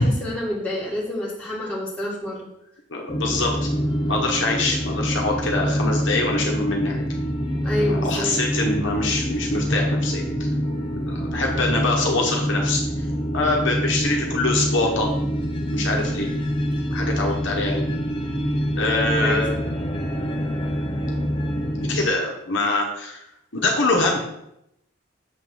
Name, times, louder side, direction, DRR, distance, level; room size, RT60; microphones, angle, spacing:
voice 1, 0.0-2.5 7.6-8.3 15.9-16.2 19.0-19.4, left 1 dB, 5° left, -6 dB, 2.0 m, -28 dB
voice 2, 2.9-3.7 4.1-7.1 7.8-10.5 11.0-13.1 13.3-15.2 15.7-16.3 16.7-17.9 18.8-19.6 21.9-23.3 23.5-24.3, left 2 dB, 55° left, 0 dB, 1.1 m, -24 dB
sound 1, 3.1-22.1, equal, 25° left, 0.7 m, -25 dB
7.1 x 3.8 x 6.2 m, 0.82 s
head